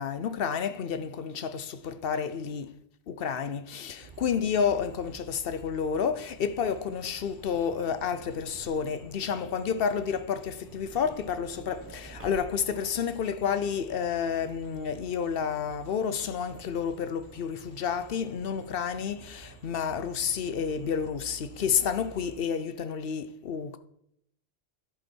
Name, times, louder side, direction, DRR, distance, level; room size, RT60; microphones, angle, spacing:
voice 1, 0.0-2.7 3.1-23.8, left 7 dB, 60° left, 0.8 m, -30 dB
sound 1, 4.0-22.4, right 5 dB, 50° right, 1.3 m, -51 dB
Truck / Door, 6.1-9.3 10.3-12.9 13.6-13.7 13.9-14.0, equal, 10° right, 1.1 m, -53 dB
11.0 x 8.1 x 4.5 m
omnidirectional pair, 1.1 m